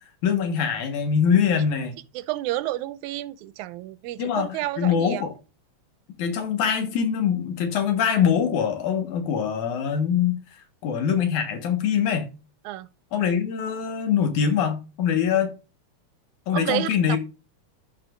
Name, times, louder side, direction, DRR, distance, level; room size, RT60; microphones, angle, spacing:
voice 1, 0.2-2.0 4.2-5.3 6.2-10.4 10.8-12.3 13.1-15.5 16.5-17.2, left 7 dB, 80° left, 2.9 m, -23 dB
voice 2, 2.2-5.2 12.7-12.9 16.5-17.2, right 15 dB, 90° right, 2.0 m, -30 dB
14.0 x 5.0 x 2.5 m
omnidirectional pair, 3.4 m